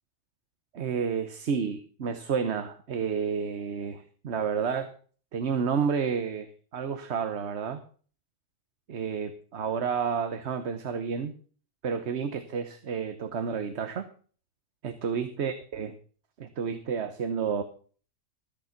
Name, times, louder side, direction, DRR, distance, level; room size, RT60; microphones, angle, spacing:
voice 1, 0.7-4.9 5.3-7.8 8.9-11.3 11.8-14.1 14.8-15.9 16.4-17.6, right 6 dB, 60° right, 9 dB, 1.3 m, -30 dB
14.0 x 8.8 x 5.8 m, 0.43 s
omnidirectional pair, 1.3 m